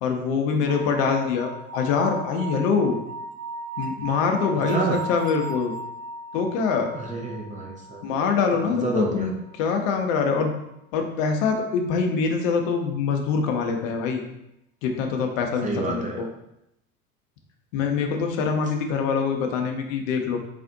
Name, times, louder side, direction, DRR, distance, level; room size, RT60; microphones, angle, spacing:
voice 1, 0.0-3.0 3.8-5.7 6.3-6.9 8.0-10.5 10.9-14.2 14.8-16.3 17.7-20.4, left 5 dB, 60° left, 3 dB, 0.8 m, -24 dB
sound 1, 0.7-10.1, right 2 dB, 85° right, 0.6 m, -37 dB
voice 2, 4.7-5.0 6.9-8.0 8.6-9.3 15.6-16.3, right 3 dB, 20° right, 0 dB, 0.5 m, -28 dB
3.4 x 2.5 x 3.8 m, 0.83 s
figure-of-eight pair, 70°, 44 cm